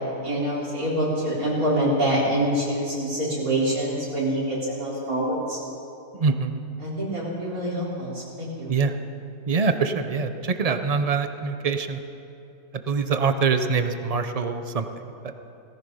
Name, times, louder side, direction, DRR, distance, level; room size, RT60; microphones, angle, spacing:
voice 1, 0.2-5.6 6.8-8.7, right 1 dB, 75° right, -6 dB, 4.4 m, -25 dB
voice 2, 6.2-6.6 8.7-8.9 9.5-12.0 12.9-14.9 15.2-15.3, right 5 dB, 40° right, 8 dB, 0.5 m, -24 dB
17.0 x 15.0 x 5.5 m, 2.8 s
omnidirectional pair, 1.5 m